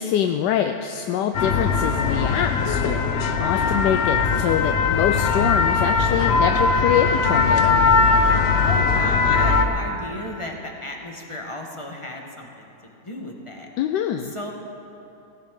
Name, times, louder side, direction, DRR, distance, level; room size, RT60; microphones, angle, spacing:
voice 1, 0.0-7.8 13.8-14.3, left 9 dB, 80° left, 6 dB, 1.2 m, -25 dB
sound 1, 1.3-9.7, left 4 dB, 55° left, 0.7 m, -20 dB
voice 2, 8.6-12.7 13.0-13.7 14.3-14.5, left 1 dB, 20° left, 1 dB, 1.1 m, -34 dB
16.5 x 15.0 x 3.7 m, 2.8 s
omnidirectional pair, 1.8 m